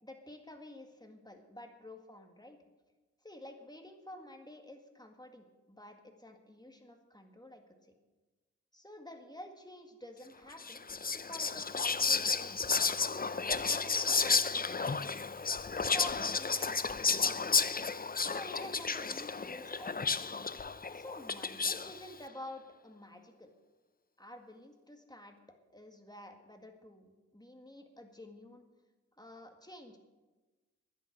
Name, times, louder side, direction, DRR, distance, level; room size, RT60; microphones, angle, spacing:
voice 1, 0.0-2.6 3.2-7.6 8.7-12.8 13.5-15.1 15.7-17.6 18.2-20.2 20.9-23.5 24.2-25.4 25.7-28.6 29.2-30.0, left 1 dB, 15° left, 4 dB, 1.8 m, -50 dB
Whispering, 10.6-22.0, left 4 dB, 30° left, 0.5 m, -32 dB
11.5 x 10.5 x 6.4 m, 1.2 s
wide cardioid pair, 65°, 29 cm